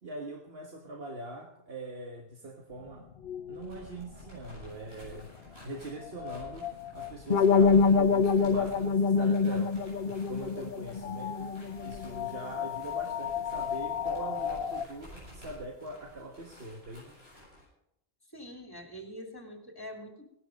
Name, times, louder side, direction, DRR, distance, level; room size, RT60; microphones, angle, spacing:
voice 1, 0.0-3.1 3.5-5.3 5.6-9.8 10.0-11.5 11.8-17.1, right 2 dB, 70° right, 2 dB, 1.7 m, -42 dB
sound 1, 2.7-14.8, left 9 dB, 70° left, 1.1 m, -39 dB
sound 2, 3.5-17.7, left 1 dB, 85° right, 8.5 m, -52 dB
sound 3, 7.3-12.2, left 5 dB, 50° left, 1.2 m, -25 dB
voice 2, 18.3-20.2, equal, 20° left, 3 dB, 2.8 m, -44 dB
18.5 x 11.5 x 5.3 m, 0.80 s
omnidirectional pair, 1.0 m